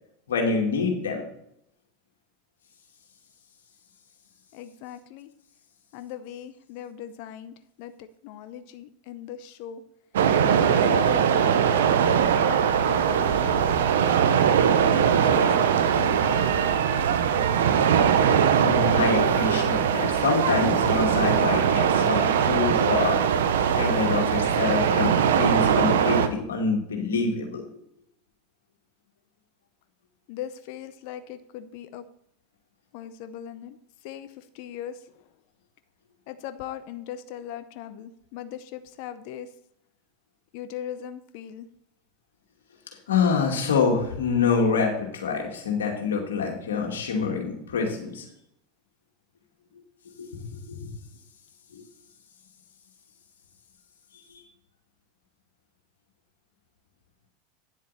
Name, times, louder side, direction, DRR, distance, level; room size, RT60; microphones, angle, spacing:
voice 1, 0.3-1.2 18.6-23.2 23.8-27.6 43.1-48.3 50.2-50.4 50.7-50.8 51.7-51.8, left 4 dB, 80° left, 1 dB, 2.4 m, -26 dB
voice 2, 4.5-5.3 5.9-9.8 10.5-11.7 12.4-12.6 12.9-13.6 15.0-16.6 30.3-32.0 32.9-33.8 34.0-35.0 36.3-39.5 40.5-41.7, left 10 dB, 60° left, 11 dB, 0.6 m, -39 dB
sound 1, 10.1-26.3, right 8 dB, 75° right, 0.8 m, -21 dB
10.0 x 7.5 x 4.2 m, 0.75 s
hypercardioid pair, 90°, 0 cm